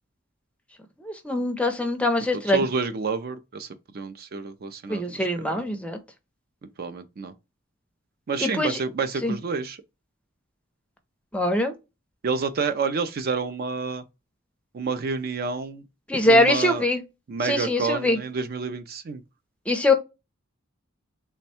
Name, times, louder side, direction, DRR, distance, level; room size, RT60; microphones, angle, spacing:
voice 1, 1.0-2.6 4.9-6.0 8.4-8.8 9.2-9.4 11.3-11.7 16.1-17.0 17.4-18.2 19.7-19.9, left 1 dB, 5° left, 0.5 m, -22 dB
voice 2, 2.4-3.7 3.9-5.6 6.8-7.3 8.3-9.8 12.2-14.0 14.7-15.8 16.2-16.9 17.3-19.2, right 4 dB, 50° right, 0.4 m, -29 dB
3.4 x 2.2 x 4.1 m
head